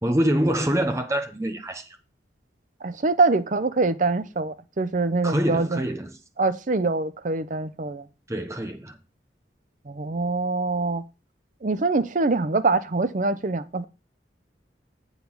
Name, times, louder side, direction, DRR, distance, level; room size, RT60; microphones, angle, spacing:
voice 1, 0.0-2.0 5.2-6.1 8.3-9.0, equal, 15° right, 1.2 m, -25 dB
voice 2, 2.8-5.8 6.4-8.1 9.9-11.0 11.6-13.8, right 3 dB, 45° right, 0.6 m, -24 dB
8.2 x 4.1 x 7.0 m
head